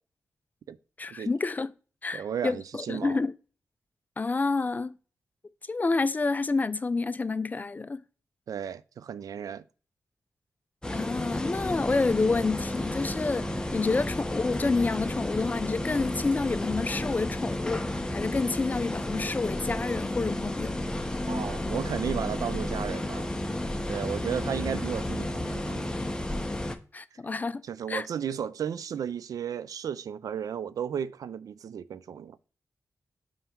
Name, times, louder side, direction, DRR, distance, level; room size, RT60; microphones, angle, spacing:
voice 1, 1.0-1.7 2.0-3.3 4.2-5.0 5.7-8.0 10.9-13.5 13.7-17.8 18.1-20.8 26.9-27.6 27.9-28.1, left 3 dB, 30° left, 0.4 m, -28 dB
voice 2, 2.1-3.2 8.5-9.6 13.8-14.0 21.3-23.3 23.9-25.9 27.6-32.4, right 8 dB, 85° right, 0.4 m, -34 dB
sound 1, 10.8-26.8, left 1 dB, 15° left, 0.8 m, -32 dB
5.6 x 4.8 x 4.4 m
wide cardioid pair, 105°, 6 cm